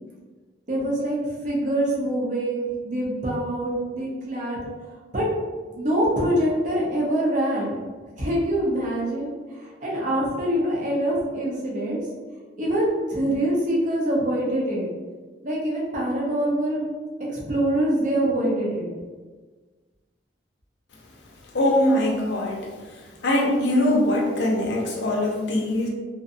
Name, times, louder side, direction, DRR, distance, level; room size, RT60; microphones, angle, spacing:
voice 1, 0.7-4.6 5.1-5.3 5.7-7.8 8.2-12.0 12.6-14.9 15.4-16.8 17.3-18.9, right 1 dB, 45° right, -4 dB, 0.6 m, -24 dB
voice 2, 21.5-22.7 23.2-25.9, left 1 dB, 80° left, -1 dB, 0.5 m, -22 dB
2.6 x 2.2 x 2.5 m, 1.4 s
head